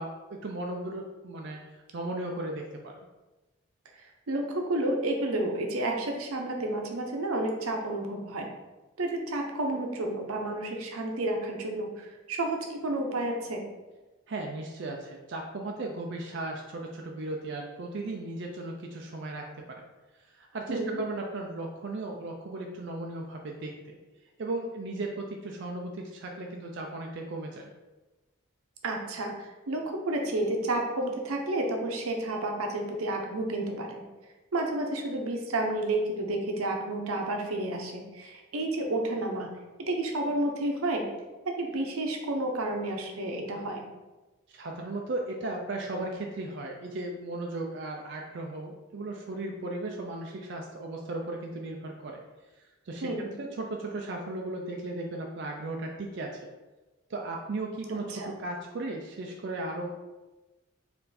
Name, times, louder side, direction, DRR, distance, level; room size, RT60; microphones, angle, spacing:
voice 1, 0.0-1.6 1.9-2.6 14.3-19.4 19.8-19.9 20.3-24.0 24.4-27.7 44.5-52.2 52.9-53.1 53.4-56.5 57.1-59.9, right 2 dB, 55° right, 1 dB, 0.4 m, -36 dB
voice 2, 4.0-8.5 9.0-13.6 20.7-21.0 28.8-34.0 34.5-39.5 39.9-41.1 41.4-43.8 53.0-53.3 57.9-58.3, right 1 dB, 90° right, 2 dB, 0.7 m, -31 dB
4.4 x 2.6 x 4.0 m, 1.1 s
head